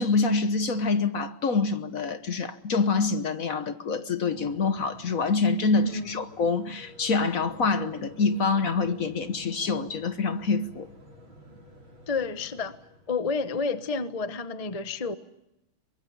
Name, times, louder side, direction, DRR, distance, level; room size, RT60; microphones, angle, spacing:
voice 1, 0.0-10.9, left 4 dB, 50° left, 1.3 m, -26 dB
sound 1, 4.3-13.3, equal, 65° right, 6.4 m, -51 dB
voice 2, 5.8-6.2 12.1-12.8 13.1-15.1, left 4 dB, 30° left, 0.7 m, -30 dB
24.0 x 21.5 x 8.5 m
omnidirectional pair, 2.3 m